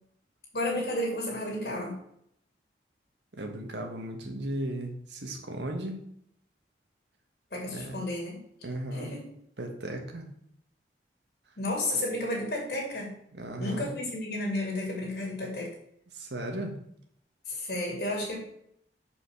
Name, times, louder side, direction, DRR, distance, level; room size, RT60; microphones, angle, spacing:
voice 1, 0.5-2.0 7.5-8.4 8.9-9.2 11.6-13.1 13.6-15.8 17.5-18.5, left 1 dB, 60° left, -2 dB, 2.4 m, -32 dB
voice 2, 3.4-6.0 7.7-7.9 8.6-9.1 9.6-10.3 13.3-13.9 16.1-16.8, right 1 dB, 75° right, 3 dB, 1.5 m, -36 dB
6.2 x 5.0 x 6.1 m, 0.71 s
head